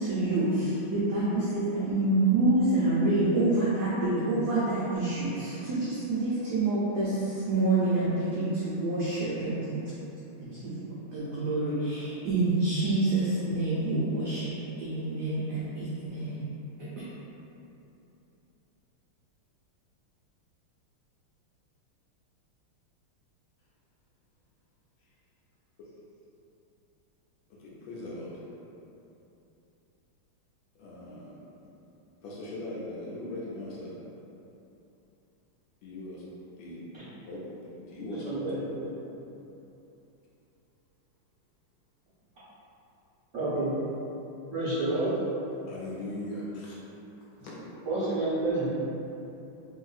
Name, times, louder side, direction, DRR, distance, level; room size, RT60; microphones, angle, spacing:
voice 1, 0.0-9.6 10.4-10.8 11.1-14.5 14.8-16.5, right 2 dB, 85° right, -9 dB, 0.9 m, -27 dB
voice 2, 27.6-28.4 30.8-31.3 32.2-34.0 35.8-36.8 37.3-38.5 45.7-46.8 47.4-47.6, left 1 dB, 75° left, -6 dB, 1.3 m, -39 dB
voice 3, 43.3-43.7 44.5-45.1 47.8-48.7, right 2 dB, 55° right, -13 dB, 0.9 m, -29 dB
3.1 x 2.7 x 2.4 m, 2.9 s
omnidirectional pair, 2.3 m